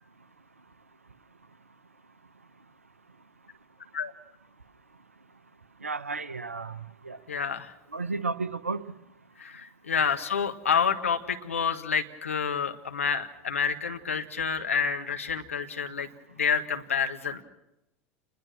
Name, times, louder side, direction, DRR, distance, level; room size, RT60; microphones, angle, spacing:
voice 1, 5.8-6.7 7.1-7.2 7.9-8.8 9.9-10.1, right 3 dB, 85° right, 15 dB, 0.9 m, -32 dB
voice 2, 7.3-7.7 9.4-16.1 16.4-17.4, left 6 dB, 80° left, 5 dB, 1.6 m, -28 dB
28.0 x 21.0 x 6.1 m, 0.89 s
figure-of-eight pair, 80°, 7 cm